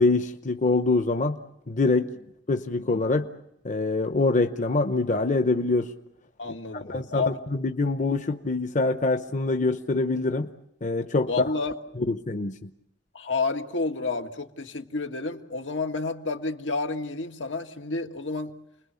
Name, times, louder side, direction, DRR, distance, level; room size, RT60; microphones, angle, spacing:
voice 1, 0.0-1.4 1.7-2.1 2.5-3.3 3.6-5.9 6.9-10.5 10.8-11.3 12.0-12.7, left 3 dB, 45° left, 8 dB, 0.9 m, -24 dB
voice 2, 6.4-7.4 11.3-11.7 13.1-18.6, left 3 dB, 90° left, 5 dB, 1.9 m, -30 dB
29.5 x 21.5 x 7.0 m, 0.79 s
head